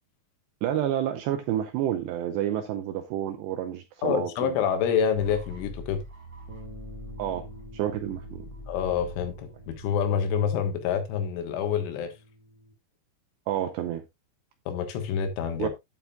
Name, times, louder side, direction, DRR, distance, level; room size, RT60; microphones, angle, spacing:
voice 1, 0.6-4.6 7.2-7.5 7.7-8.5 13.5-14.0 15.6-15.7, right 11 dB, 85° right, 2.5 m, -29 dB
voice 2, 4.0-6.0 8.7-12.1 14.7-15.7, left 8 dB, 75° left, 3.8 m, -27 dB
sound 1, 5.2-11.1, equal, 10° right, 6.4 m, -44 dB
sound 2, 6.5-12.7, equal, 60° right, 2.3 m, -50 dB
9.6 x 8.9 x 2.3 m
omnidirectional pair, 5.7 m